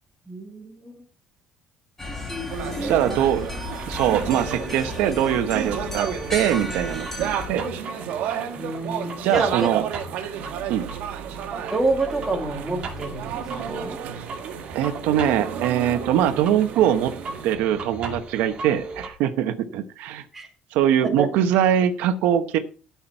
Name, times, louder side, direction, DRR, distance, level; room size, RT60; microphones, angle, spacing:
voice 1, 0.3-1.0 2.7-3.1 8.5-9.7 11.7-14.0 20.3-20.5 21.0-21.3, right 2 dB, 10° right, 1 dB, 2.1 m, -28 dB
sound 1, 2.0-7.5, left 2 dB, 10° left, 1.9 m, -33 dB
sound 2, 2.5-17.6, right 9 dB, 65° right, 1.5 m, -33 dB
voice 2, 2.8-7.6 9.2-9.9 10.7-10.9 14.7-17.1 17.4-20.2 20.7-22.6, right 10 dB, 85° right, 8 dB, 1.0 m, -22 dB
sound 3, 3.8-19.1, right 3 dB, 35° right, 2.5 m, -37 dB
13.0 x 5.9 x 4.6 m, 0.38 s
cardioid pair, 180°, 3 cm